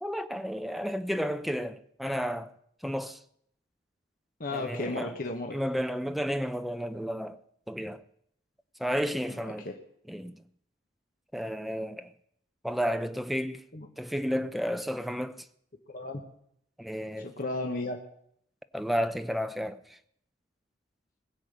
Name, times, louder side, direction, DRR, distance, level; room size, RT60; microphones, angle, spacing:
voice 1, 0.0-2.5 2.8-3.2 4.5-5.1 5.5-7.4 7.7-8.0 8.8-9.7 10.1-10.4 11.3-12.1 12.6-13.6 14.0-15.4 16.8-17.3 18.7-19.8, equal, ahead, 0.6 m, -32 dB
voice 2, 4.4-5.5 9.3-9.8 13.7-13.9 15.9-16.2 17.2-18.0, left 2 dB, 50° left, 1.2 m, -34 dB
20.5 x 7.8 x 6.7 m
head